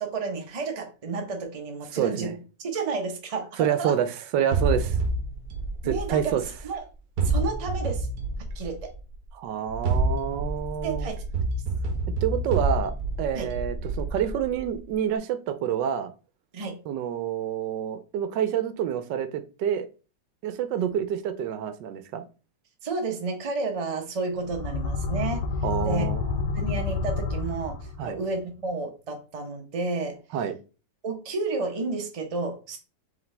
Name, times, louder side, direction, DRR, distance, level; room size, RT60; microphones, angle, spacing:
voice 1, 0.0-4.0 5.8-6.8 7.2-8.1 8.5-8.9 10.8-11.2 13.3-13.5 16.5-16.8 20.8-20.9 22.8-25.5 25.8-26.1 26.5-30.2 31.0-32.8, right 3 dB, 30° right, 0.6 m, -31 dB
voice 2, 1.9-2.3 3.6-4.9 5.8-6.4 9.3-11.1 12.2-12.9 13.2-16.1 16.9-19.9 20.4-22.2 25.6-26.2 28.0-28.2 30.3-30.5, right 9 dB, 80° right, 1.2 m, -28 dB
sound 1, 4.5-6.6 7.2-9.0 9.7-14.7, right 3 dB, 65° right, 1.3 m, -28 dB
sound 2, 24.4-28.2, left 4 dB, 70° left, 0.9 m, -29 dB
4.9 x 3.3 x 3.3 m
omnidirectional pair, 1.9 m